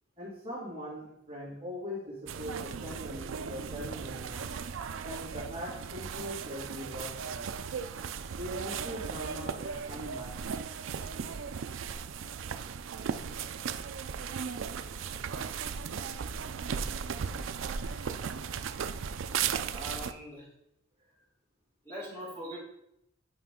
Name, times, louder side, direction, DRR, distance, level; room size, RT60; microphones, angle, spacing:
voice 1, 0.2-4.5 5.0-7.5 8.4-10.3 17.8-18.1, equal, 25° right, -8 dB, 2.3 m, -41 dB
sound 1, 2.3-20.1, right 6 dB, 75° right, 0.4 m, -36 dB
voice 2, 19.7-20.5 21.8-22.6, equal, 15° left, -9 dB, 3.1 m, -41 dB
8.3 x 4.9 x 3.7 m, 0.80 s
head